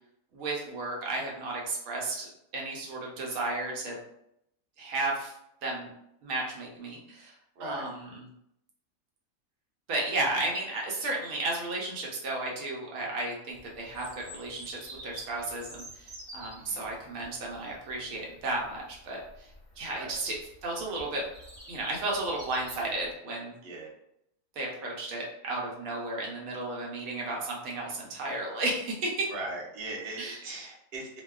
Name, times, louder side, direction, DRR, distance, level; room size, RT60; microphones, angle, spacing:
voice 1, 0.3-4.0 4.8-5.3 5.6-5.9 6.2-7.3 7.6-8.2 9.9-19.5 19.8-20.4 20.6-21.2 21.7-23.5 24.6-29.3 30.2-30.4, right 2 dB, 90° right, -2 dB, 1.1 m, -33 dB
voice 2, 7.6-7.9 16.6-16.8 19.9-20.2 23.6-23.9 29.3-31.2, right 2 dB, 55° right, -2 dB, 0.7 m, -39 dB
Bird vocalization bird call bird song, 13.5-23.1, right 1 dB, 35° right, 1.1 m, -49 dB
2.6 x 2.2 x 2.2 m, 0.78 s
omnidirectional pair, 1.5 m